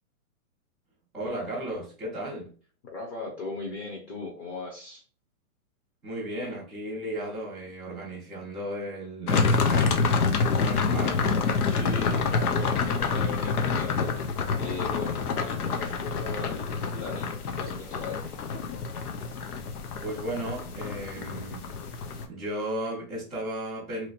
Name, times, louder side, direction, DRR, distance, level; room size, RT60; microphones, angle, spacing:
voice 1, 1.1-2.5 6.0-11.3 20.0-21.7 22.0-24.1, right 1 dB, ahead, 0.4 m, -35 dB
voice 2, 2.8-5.0 11.6-18.2, left 3 dB, 30° left, 0.7 m, -38 dB
sound 1, 9.3-22.3, left 4 dB, 90° left, 0.8 m, -27 dB
3.0 x 2.8 x 2.8 m
hypercardioid pair, 150°, 44 cm